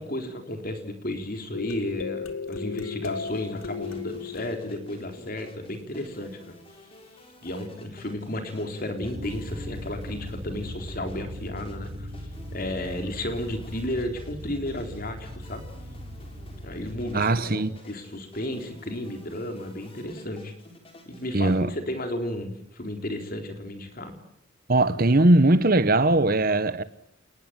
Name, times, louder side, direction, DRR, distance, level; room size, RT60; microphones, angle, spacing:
voice 1, 0.0-6.5 7.4-12.1 12.5-15.7 16.6-20.5 21.1-24.1, left 1 dB, 45° left, 4.0 m, -33 dB
sound 1, 1.5-6.0, left 5 dB, 85° left, 2.4 m, -35 dB
sound 2, 3.0-21.6, left 1 dB, 25° left, 4.6 m, -51 dB
sound 3, 9.0-17.2, equal, 75° right, 7.9 m, -38 dB
voice 2, 17.1-17.8 21.3-21.7 24.7-26.8, right 2 dB, 45° right, 1.1 m, -20 dB
28.5 x 20.0 x 8.9 m
head